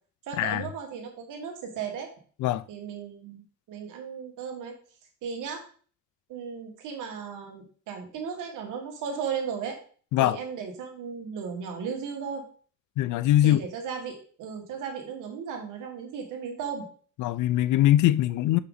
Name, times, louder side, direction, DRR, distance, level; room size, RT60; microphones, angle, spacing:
voice 1, 0.3-2.1 2.7-3.4 3.7-4.7 5.2-5.7 6.3-9.8 10.2-12.5 13.4-16.8, right 6 dB, 90° right, 2.0 m, -35 dB
voice 2, 13.0-13.6 17.2-18.6, left 13 dB, 80° left, 0.5 m, -22 dB
6.2 x 5.7 x 4.0 m
cardioid pair, 90°, 30 cm